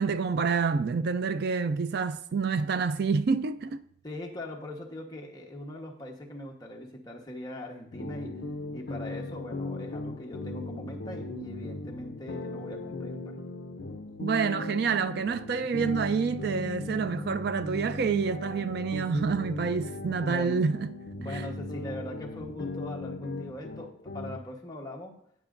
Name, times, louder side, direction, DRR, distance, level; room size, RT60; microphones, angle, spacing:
voice 1, 0.0-3.8 14.2-20.9 21.3-21.5, right 5 dB, 55° right, 0.4 m, -28 dB
voice 2, 4.0-8.4 8.7-13.4 20.2-20.6 21.2-25.2, left 1 dB, 20° left, 1.1 m, -41 dB
sound 1, 7.9-24.4, left 2 dB, 55° left, 0.6 m, -38 dB
17.5 x 6.1 x 2.5 m
head